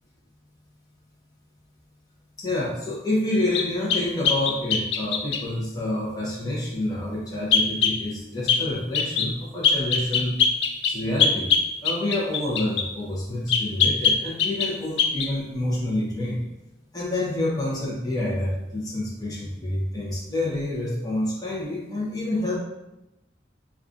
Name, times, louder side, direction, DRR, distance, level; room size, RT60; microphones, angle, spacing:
voice 1, 2.4-10.4 10.8-11.5 11.8-16.4 16.9-22.6, left 1 dB, 20° left, -6 dB, 0.7 m, -28 dB
sound 1, 3.5-5.5 7.5-8.0 8.5-8.7 8.9-9.3 9.6-12.9 13.5-14.7 15.0-15.3, left 6 dB, 70° left, 0.4 m, -22 dB
5.1 x 2.3 x 2.4 m, 0.96 s
head